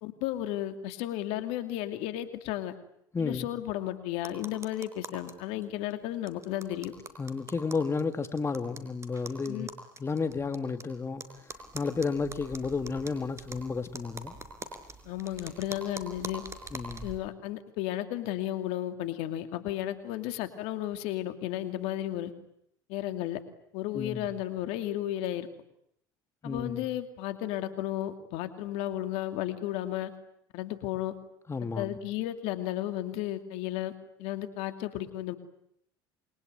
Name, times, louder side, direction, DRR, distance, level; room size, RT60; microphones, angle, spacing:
voice 1, 0.0-2.7 3.2-6.9 9.5-9.7 15.1-16.4 17.0-22.3 22.9-23.4 23.7-25.5 26.4-30.1 30.5-31.1 31.8-33.9 34.2-35.4, left 13 dB, 70° left, 2.6 m, -33 dB
voice 2, 3.1-3.5 7.2-9.7 10.0-14.4 16.7-17.1 23.9-24.3 26.4-26.9 31.5-32.0, left 4 dB, 25° left, 2.1 m, -32 dB
sound 1, 4.2-5.3 5.6-5.7 5.9-6.0 6.3-10.8 11.2-17.2, right 3 dB, 25° right, 4.8 m, -44 dB
28.0 x 22.5 x 9.2 m
hypercardioid pair, 75°, 11 cm